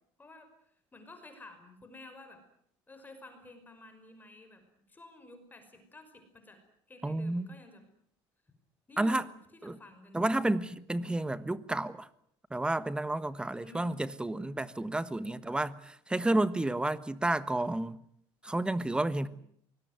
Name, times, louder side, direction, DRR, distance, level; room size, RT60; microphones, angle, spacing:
voice 1, 0.2-0.5 0.9-2.4 2.9-4.6 4.9-6.6 6.9-7.8 8.9-10.5 13.3-13.9 19.1-19.3, left 2 dB, 15° left, 5.6 m, -52 dB
voice 2, 7.0-7.5 9.0-9.3 9.6-9.8 10.1-12.1 12.5-18.0 18.4-19.3, right 2 dB, 10° right, 1.3 m, -31 dB
24.5 x 21.0 x 9.5 m
cardioid pair, 125°, 11 cm